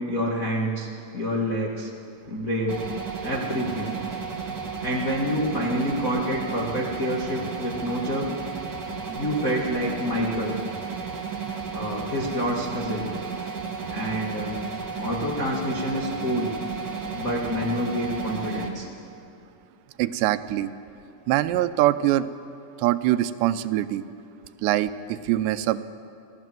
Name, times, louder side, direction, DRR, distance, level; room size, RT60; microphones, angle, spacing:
voice 1, 0.1-0.9 1.1-1.9 2.3-2.8 3.2-3.9 4.8-8.3 9.2-10.6 11.7-13.1 13.9-14.6 15.0-16.5 17.1-18.9, equal, 55° left, -3 dB, 0.9 m, -27 dB
sound 1, 2.7-18.7, right 5 dB, 45° right, 1.5 m, -33 dB
voice 2, 20.0-20.7 21.3-22.3 22.8-24.0 24.6-25.8, right 14 dB, 90° right, 13 dB, 2.9 m, -23 dB
26.0 x 16.5 x 7.6 m, 2.7 s
omnidirectional pair, 4.8 m